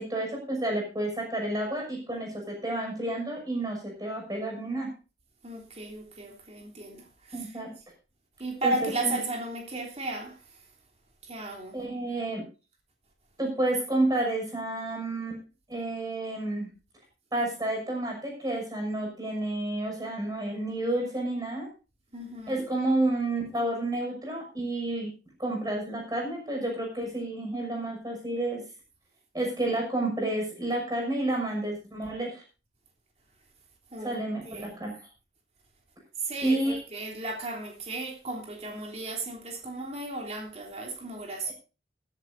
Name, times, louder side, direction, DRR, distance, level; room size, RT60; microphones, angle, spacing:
voice 1, 0.0-4.9 7.3-7.7 8.6-9.2 11.7-12.4 13.4-15.4 15.7-16.7 17.3-21.7 22.5-25.1 25.4-28.6 29.3-32.4 34.0-35.0 36.4-36.8, right 1 dB, 20° right, 6.4 m, -30 dB
voice 2, 5.4-7.6 8.4-10.6 11.2-11.8 22.1-22.6 33.9-34.2 34.4-34.7 36.2-41.5, right 2 dB, 35° right, 3.3 m, -35 dB
21.0 x 10.5 x 2.7 m
head